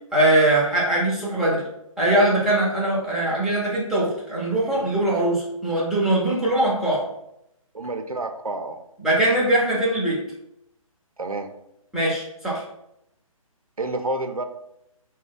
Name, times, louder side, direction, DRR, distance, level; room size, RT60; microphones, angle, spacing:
voice 1, 0.1-1.6 2.0-7.0 9.0-10.2 11.9-12.6, right 1 dB, ahead, -8 dB, 0.6 m, -21 dB
voice 2, 7.7-8.8 11.2-11.5 13.8-14.4, right 2 dB, 85° right, 6 dB, 0.5 m, -29 dB
4.6 x 2.2 x 3.8 m, 0.81 s
figure-of-eight pair, 140°, 18 cm